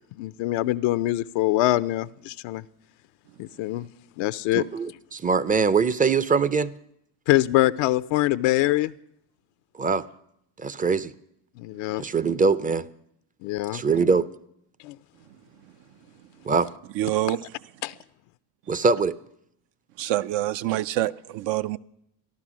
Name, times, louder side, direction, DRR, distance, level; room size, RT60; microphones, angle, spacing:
voice 1, 0.2-2.6 3.4-3.9 4.2-4.6 7.3-8.9 11.6-12.0 13.4-13.8 14.8-15.0 17.8-17.9, left 16 dB, 65° left, 0.6 m, -24 dB
voice 2, 4.5-6.7 9.8-10.0 10.6-11.1 12.0-12.9 13.7-14.3 16.5-16.7 18.7-19.2, right 5 dB, 20° right, 0.5 m, -22 dB
voice 3, 16.9-17.4 20.0-21.8, right 14 dB, 60° right, 0.6 m, -26 dB
14.5 x 11.5 x 6.1 m
supercardioid pair, 85°, 48 cm